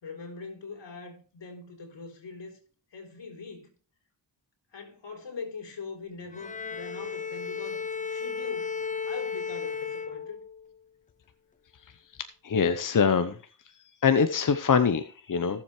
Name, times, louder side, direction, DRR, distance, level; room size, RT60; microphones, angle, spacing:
voice 1, 0.0-2.6 2.9-3.7 4.7-7.8 8.1-8.8 9.0-10.4, left 4 dB, 85° left, 3.7 m, -42 dB
Bowed string instrument, 6.3-10.8, left 5 dB, 20° left, 0.5 m, -34 dB
voice 2, 12.4-13.4 14.0-15.6, left 6 dB, 50° left, 0.9 m, -23 dB
17.0 x 7.4 x 3.2 m
cardioid pair, 65°, 42 cm